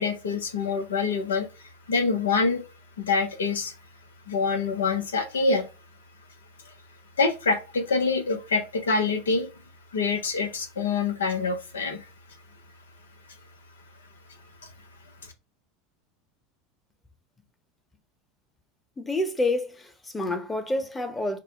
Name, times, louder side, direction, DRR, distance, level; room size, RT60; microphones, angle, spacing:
voice 1, 0.0-1.5 1.9-2.6 3.0-3.7 4.3-5.7 7.2-9.5 9.9-12.0, left 4 dB, 80° left, 0.9 m, -25 dB
voice 2, 19.0-21.4, left 2 dB, 15° left, 1.0 m, -28 dB
4.8 x 2.3 x 4.5 m
hypercardioid pair, 80°, 0 cm